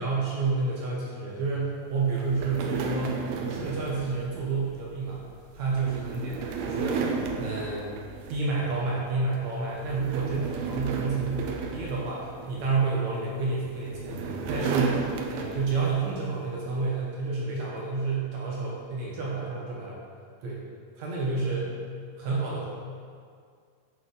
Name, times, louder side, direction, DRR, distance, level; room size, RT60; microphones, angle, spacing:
voice 1, 0.0-5.2 5.5-7.9 8.3-20.0 20.4-20.6 21.0-21.7 22.2-22.7, right 4 dB, 65° right, -4 dB, 1.8 m, -30 dB
sound 1, 2.1-8.7 9.1-9.3 9.8-12.8 13.6-16.0, right 5 dB, 85° right, 2.5 m, -34 dB
7.8 x 6.6 x 3.9 m, 2.1 s
omnidirectional pair, 4.4 m